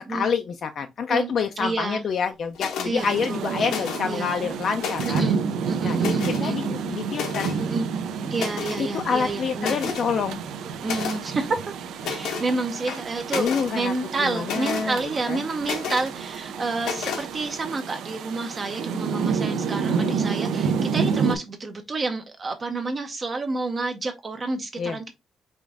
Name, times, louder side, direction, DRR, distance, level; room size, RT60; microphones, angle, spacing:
voice 1, 0.0-5.3 5.8-7.5 8.8-10.4 13.3-13.9 14.2-15.0 15.3-15.4 19.9-20.2 24.8-25.0, left 6 dB, 45° left, 0.4 m, -27 dB
voice 2, 1.6-2.0 2.8-3.7 4.1-4.5 5.0-5.4 5.7-6.6 7.6-7.9 8.3-9.8 10.8-11.7 12.1-13.5 13.7-25.1, right 3 dB, 25° right, 0.5 m, -29 dB
sound 1, 2.5-2.9 3.6-4.2 4.6-5.3 6.0-6.5 7.1-7.6 8.3-8.8 9.2-9.3 9.6-10.1 10.8-11.2 12.0-12.5 12.9-13.7 14.4-14.9 15.6-16.1 16.8-17.3, left 6 dB, 80° left, 0.9 m, -31 dB
Rain, 3.0-21.4, right 5 dB, 75° right, 0.5 m, -29 dB
5.1 x 2.5 x 3.5 m
cardioid pair, 170°, 0 cm